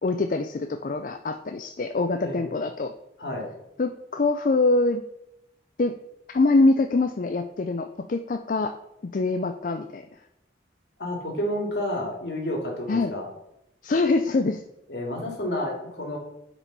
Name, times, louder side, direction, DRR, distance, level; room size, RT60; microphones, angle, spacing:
voice 1, 0.0-2.9 3.8-5.0 5.8-5.9 6.3-8.7 9.0-10.0 12.9-13.1 13.8-14.6, left 3 dB, 45° left, 7 dB, 0.4 m, -24 dB
voice 2, 11.0-13.3 14.9-16.2, left 1 dB, 65° left, 0 dB, 2.4 m, -30 dB
8.6 x 5.1 x 5.4 m, 0.83 s
head